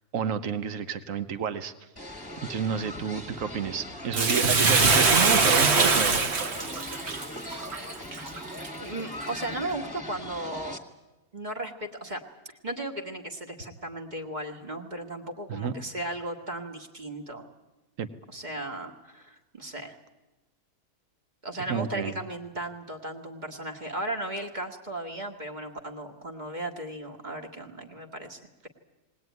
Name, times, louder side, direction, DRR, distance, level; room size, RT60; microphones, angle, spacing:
voice 1, 0.1-1.7 2.5-6.3 7.5-7.6 15.5-15.7 18.0-18.1 21.7-22.1, right 7 dB, 65° right, 12 dB, 1.4 m, -30 dB
sound 1, 2.0-10.8, left 1 dB, 15° left, 1.5 m, -40 dB
Bathtub (filling or washing), 4.1-8.7 9.2-9.3, right 4 dB, 45° right, 1.5 m, -23 dB
voice 2, 8.8-10.8 11.3-12.2 12.6-17.5 18.3-20.0 21.4-28.7, right 1 dB, 30° right, 4 dB, 1.8 m, -36 dB
19.5 x 19.0 x 9.4 m, 1.1 s
omnidirectional pair, 1.6 m